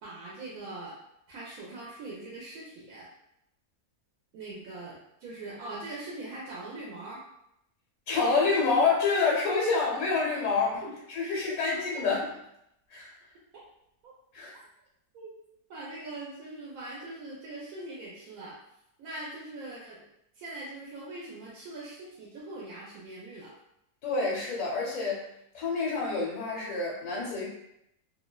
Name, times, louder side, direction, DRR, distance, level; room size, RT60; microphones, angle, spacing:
voice 1, 0.0-0.9 1.3-3.1 4.3-7.2 10.8-10.9 11.7-11.8 14.0-14.1 15.1-15.3 15.7-18.5 19.0-20.0 20.3-23.5, right 2 dB, 80° right, -6 dB, 1.1 m, -42 dB
voice 2, 8.1-10.8 11.1-12.3 12.9-13.1 14.3-14.5 24.0-25.3 25.5-27.5, left 4 dB, 80° left, -4 dB, 1.1 m, -27 dB
2.7 x 2.1 x 2.2 m, 0.80 s
omnidirectional pair, 1.5 m